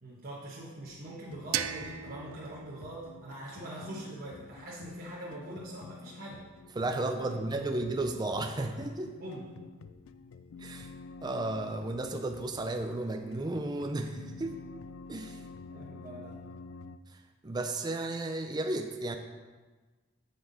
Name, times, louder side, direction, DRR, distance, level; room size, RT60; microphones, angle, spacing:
voice 1, 0.0-6.4 7.2-7.7 9.2-9.5 15.7-16.5, right 1 dB, 45° right, -6 dB, 1.1 m, -43 dB
sound 1, 0.9-17.0, left 4 dB, 85° left, 0.4 m, -49 dB
sound 2, 1.5-4.4, right 10 dB, 85° right, 0.4 m, -39 dB
voice 2, 6.8-9.1 10.6-10.9 11.2-14.6 15.1-15.4 17.1-19.2, right 2 dB, 20° right, 5 dB, 0.4 m, -33 dB
7.7 x 7.0 x 4.0 m, 1.3 s
head